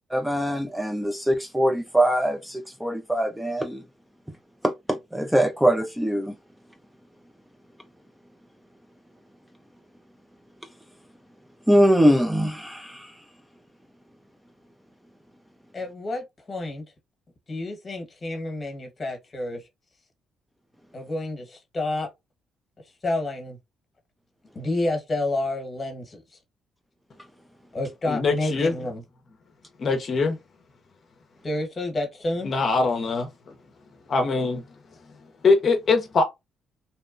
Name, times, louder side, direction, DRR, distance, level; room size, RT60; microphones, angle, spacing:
voice 1, 0.1-3.8 4.6-6.3 11.7-13.1, equal, 5° right, 0.4 m, -22 dB
voice 2, 15.7-16.8 17.5-19.6 20.9-22.1 23.0-23.6 24.5-26.4 27.7-29.0 31.4-32.5, left 2 dB, 30° left, 1.1 m, -29 dB
voice 3, 28.1-28.7 29.8-30.4 32.4-33.3 34.1-34.6 35.4-36.2, left 4 dB, 50° left, 0.6 m, -22 dB
2.8 x 2.2 x 2.4 m
cardioid pair, 90°, 0 cm